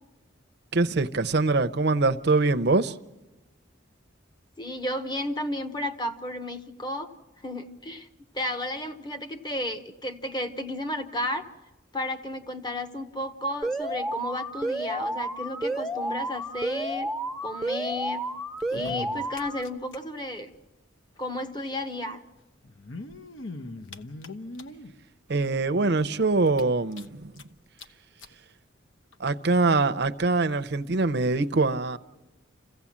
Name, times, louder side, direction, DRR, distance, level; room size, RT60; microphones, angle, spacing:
voice 1, 0.7-2.9 25.3-27.3 29.2-32.0, right 3 dB, 55° right, 0.6 m, -23 dB
voice 2, 4.6-7.1 7.4-8.1 8.3-11.5 11.9-17.1 17.4-18.2 18.7-20.5 21.2-22.2, left 1 dB, 20° left, 1.0 m, -33 dB
Alarm, 13.6-19.6, right 1 dB, ahead, 0.7 m, -31 dB
sound 1, 18.5-20.0 20.2-20.3 20.5-20.6 21.7-21.8 22.6-24.9 25.5-25.6 26.0-26.1 26.5-27.4 27.8-27.9 28.2-28.3 29.1-29.2, left 2 dB, 70° left, 1.0 m, -41 dB
28.0 x 16.0 x 7.3 m
head